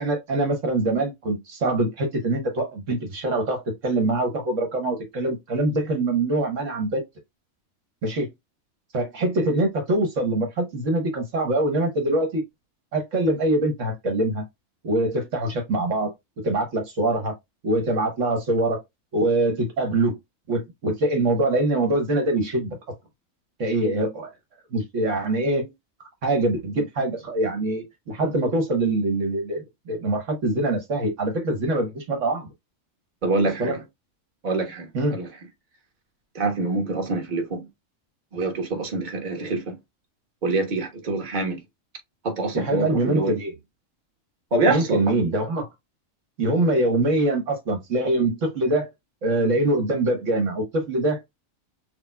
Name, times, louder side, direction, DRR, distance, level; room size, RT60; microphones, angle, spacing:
voice 1, 0.0-7.0 8.0-8.3 8.9-12.4 12.9-14.5 14.8-16.1 16.4-17.3 17.6-18.8 19.1-20.2 20.5-22.8 23.6-24.3 24.7-25.7 26.2-32.5 33.6-33.8 34.9-35.2 42.5-43.5 44.7-45.7 46.4-48.9 49.2-51.2, right 2 dB, 65° right, 1.3 m, -24 dB
voice 2, 33.2-33.8 34.4-35.3 36.3-37.7 38.3-39.8 40.4-41.6 42.2-43.4 44.5-45.0, right 3 dB, 35° right, 1.2 m, -25 dB
6.5 x 2.3 x 2.2 m
omnidirectional pair, 1.4 m